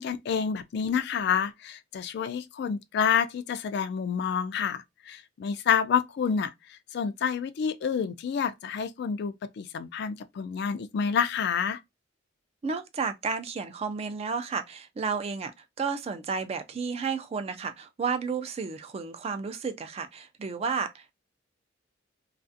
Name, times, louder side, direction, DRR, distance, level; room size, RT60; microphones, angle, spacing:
voice 1, 0.0-11.8, left 7 dB, 60° left, 0.3 m, -28 dB
voice 2, 12.6-21.1, right 5 dB, 30° right, 0.3 m, -32 dB
2.4 x 2.4 x 2.5 m
head